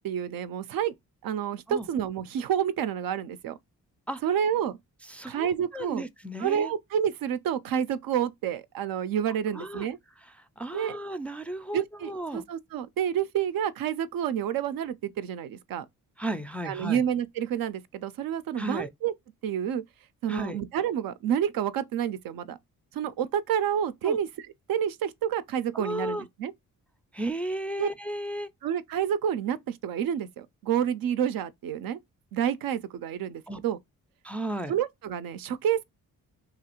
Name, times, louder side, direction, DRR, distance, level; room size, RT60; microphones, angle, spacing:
voice 1, 0.0-0.9 1.2-3.6 4.2-4.8 5.3-6.0 6.4-10.0 10.7-11.0 11.7-15.9 16.6-19.1 19.4-19.8 20.2-22.6 22.9-24.3 24.7-26.5 27.8-27.9 28.6-32.0 32.3-33.8 34.7-35.8, right 9 dB, 70° right, 0.5 m, -29 dB
voice 2, 5.0-6.7 9.5-9.9 10.2-12.5 16.2-17.0 18.6-18.9 20.3-20.6 24.0-24.2 25.7-26.3 27.1-28.5 33.5-33.6 34.2-34.8, right 1 dB, 5° left, 0.3 m, -34 dB
3.0 x 2.4 x 2.9 m
supercardioid pair, 60°, 36 cm